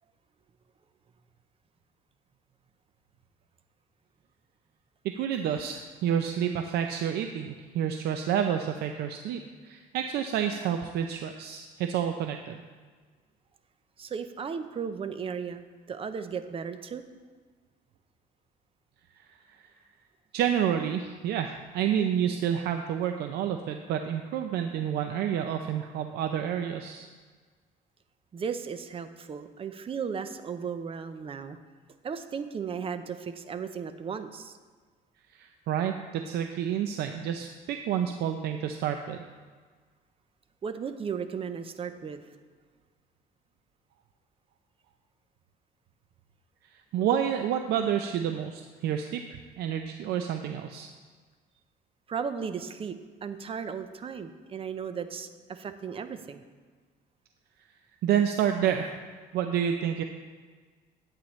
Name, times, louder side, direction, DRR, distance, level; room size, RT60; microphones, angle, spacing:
voice 1, 5.0-12.6 19.2-19.6 20.3-27.1 35.3-39.2 46.7-49.2 49.6-50.9 58.0-59.0 59.3-60.0, right 9 dB, 75° right, 6 dB, 0.5 m, -29 dB
voice 2, 14.0-17.0 28.3-31.6 32.0-34.6 40.6-42.3 52.1-56.4, right 6 dB, 35° right, 10 dB, 0.6 m, -35 dB
11.5 x 8.7 x 3.1 m, 1.5 s
cardioid pair, 110°, 17 cm